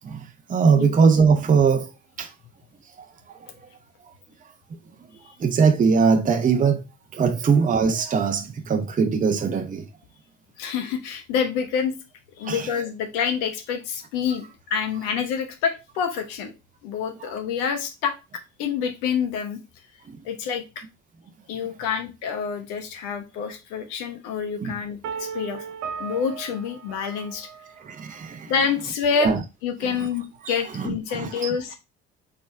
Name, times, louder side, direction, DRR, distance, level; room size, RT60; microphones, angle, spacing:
voice 1, 0.5-1.9 2.2-2.3 5.4-6.8 7.1-9.9 12.4-12.7 17.2-17.3 24.6-24.7 27.8-28.5 29.2-29.4 30.5-31.5, right 5 dB, 20° right, 0.7 m, -21 dB
voice 2, 10.6-11.9 12.4-14.4 14.7-16.5 16.8-18.1 18.6-19.6 20.2-20.6 21.5-25.6 26.0-27.5 28.4-29.3 29.6-31.8, left 6 dB, 65° left, 1.1 m, -27 dB
sound 1, 25.0-28.0, right 6 dB, 50° right, 1.2 m, -36 dB
4.1 x 3.7 x 3.4 m
figure-of-eight pair, 55°, 36 cm